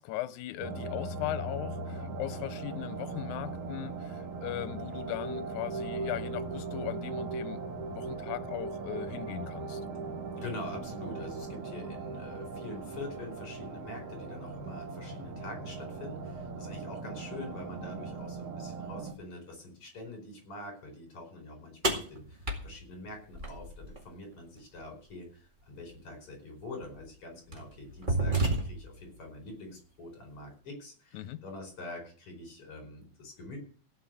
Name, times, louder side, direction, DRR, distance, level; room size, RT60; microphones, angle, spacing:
voice 1, 0.0-9.8 31.1-31.4, left 16 dB, 85° left, 2.1 m, -38 dB
sound 1, 0.6-19.1, right 3 dB, 80° right, 3.2 m, -39 dB
voice 2, 10.4-33.6, left 2 dB, 50° left, 5.7 m, -45 dB
sound 2, 21.8-24.0 25.9-26.0 26.8-27.0 27.5-29.0, right 2 dB, 20° right, 1.9 m, -31 dB
16.5 x 5.9 x 7.7 m
omnidirectional pair, 3.3 m